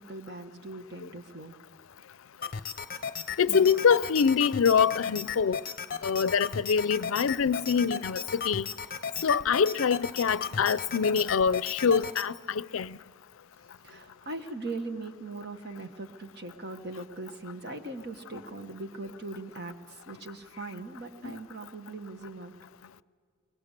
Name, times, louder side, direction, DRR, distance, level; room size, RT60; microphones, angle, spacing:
voice 1, 0.0-1.5 3.5-3.7 13.8-22.5, right 2 dB, 55° right, 1.5 m, -40 dB
sound 1, 2.4-12.3, left 6 dB, 45° left, 0.7 m, -36 dB
voice 2, 3.4-5.6 6.0-8.7 9.2-13.0 21.2-21.4, left 6 dB, 85° left, 0.5 m, -25 dB
23.5 x 20.0 x 6.7 m
head